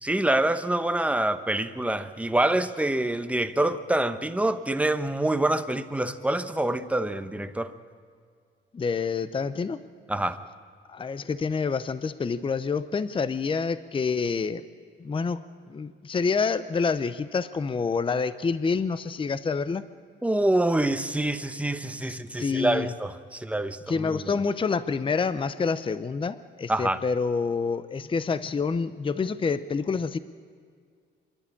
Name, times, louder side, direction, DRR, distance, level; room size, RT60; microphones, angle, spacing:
voice 1, 0.0-7.7 10.1-10.4 20.2-24.2 26.7-27.0, right 1 dB, 5° right, 9 dB, 1.0 m, -26 dB
voice 2, 8.7-9.8 10.9-14.6 15.0-15.4 15.7-19.8 22.0-22.9 23.9-30.2, left 5 dB, 25° left, 14 dB, 0.7 m, -27 dB
26.0 x 12.0 x 8.6 m, 2.1 s
cardioid pair, 90°, 20 cm